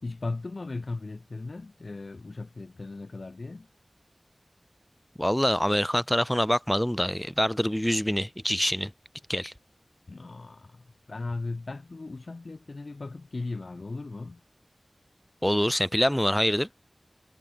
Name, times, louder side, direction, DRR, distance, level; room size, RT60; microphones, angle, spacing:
voice 1, 0.0-3.7 10.1-14.4, left 3 dB, 80° left, 1.7 m, -37 dB
voice 2, 5.2-8.9 9.3-9.5 15.4-16.7, equal, 5° left, 0.4 m, -25 dB
wide cardioid pair, 60°, 0 cm